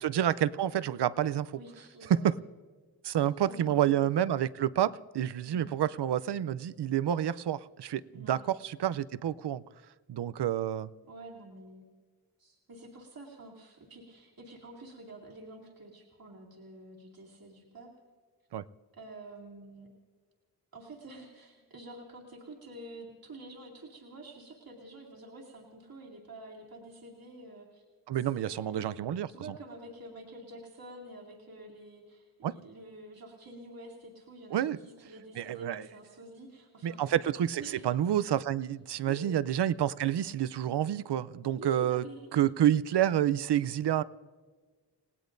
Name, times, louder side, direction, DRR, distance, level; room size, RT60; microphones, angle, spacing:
voice 1, 0.0-1.6 2.1-2.4 3.0-9.6 10.1-10.9 18.5-18.6 28.1-29.3 32.4-32.6 34.5-34.8 35.4-35.9 36.8-42.0 42.3-44.0, right 11 dB, 75° right, 0.6 m, -29 dB
voice 2, 1.5-2.3 3.1-4.0 5.4-5.8 8.1-8.4 11.0-11.8 12.4-17.9 18.9-19.9 20.7-27.8 28.1-28.9 29.3-37.1 37.6-37.8 39.1-39.3 41.6-42.3, right 2 dB, 60° right, 2.6 m, -48 dB
30.0 x 18.5 x 2.6 m
wide cardioid pair, 140°, 41 cm